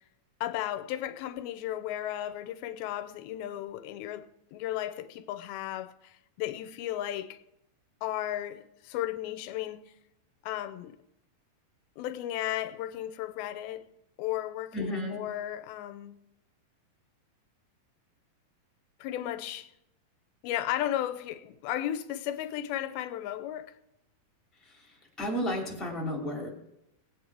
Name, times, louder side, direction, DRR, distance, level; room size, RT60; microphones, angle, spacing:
voice 1, 0.4-4.3 4.5-7.4 8.0-9.8 10.4-11.0 12.0-13.8 14.2-16.2 19.0-19.7 20.4-23.7, left 12 dB, 85° left, 2.5 m, -34 dB
voice 2, 14.7-15.2 24.7-24.8 25.2-26.5, equal, ahead, 2.0 m, -32 dB
18.5 x 8.7 x 4.7 m
omnidirectional pair, 4.4 m